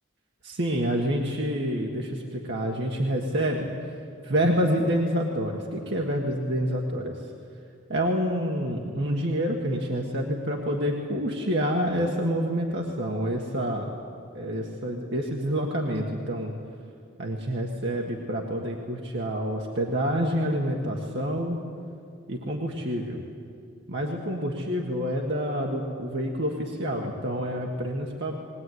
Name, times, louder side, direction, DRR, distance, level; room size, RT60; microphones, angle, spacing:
voice 1, 0.4-3.7 4.2-7.2 7.9-13.9 14.3-16.5 17.2-21.6 22.3-23.2 23.9-28.4, equal, 55° right, -1 dB, 1.7 m, -27 dB
20.0 x 19.5 x 9.5 m, 2.4 s
head